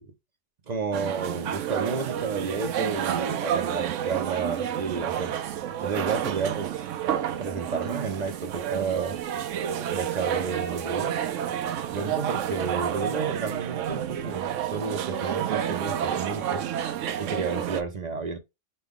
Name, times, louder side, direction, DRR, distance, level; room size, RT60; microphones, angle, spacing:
voice 1, 0.7-5.4 5.8-6.8 7.3-9.5 9.9-11.2 11.9-16.6 17.2-18.4, right 4 dB, 45° right, 0.6 m, -31 dB
sound 1, 0.9-17.8, right 10 dB, 80° right, 0.9 m, -30 dB
5.4 x 2.2 x 3.6 m
omnidirectional pair, 1.3 m